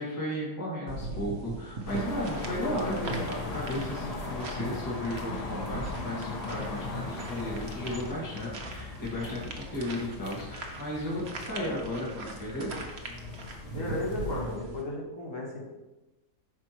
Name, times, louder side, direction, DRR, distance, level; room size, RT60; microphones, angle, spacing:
voice 1, 0.0-12.7, left 1 dB, 15° left, -6 dB, 1.7 m, -34 dB
sound 1, 0.9-14.8, right 2 dB, 45° right, 1.1 m, -41 dB
sound 2, 1.9-14.6, left 3 dB, 35° left, 0.6 m, -38 dB
voice 2, 13.7-15.6, left 1 dB, 55° left, -2 dB, 1.9 m, -34 dB
8.8 x 5.9 x 3.0 m, 1.1 s
omnidirectional pair, 1.7 m